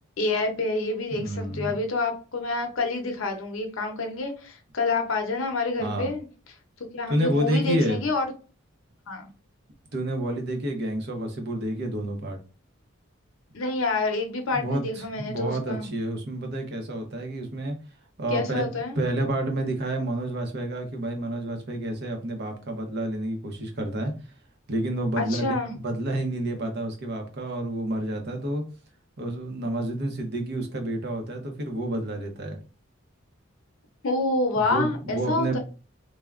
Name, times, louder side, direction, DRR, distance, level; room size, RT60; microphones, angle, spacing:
voice 1, 0.2-6.2 6.9-8.2 9.1-9.3 13.5-15.9 18.3-19.0 25.2-25.7 34.0-35.6, left 3 dB, 75° left, 4 dB, 0.7 m, -27 dB
voice 2, 1.1-1.8 5.8-6.1 7.1-8.1 9.9-12.4 14.5-17.8 18.2-18.7 19.0-24.1 24.7-25.6 25.8-28.6 29.2-32.6 34.7-35.6, right 1 dB, 55° right, 3 dB, 0.7 m, -29 dB
3.3 x 2.1 x 2.3 m, 0.35 s
head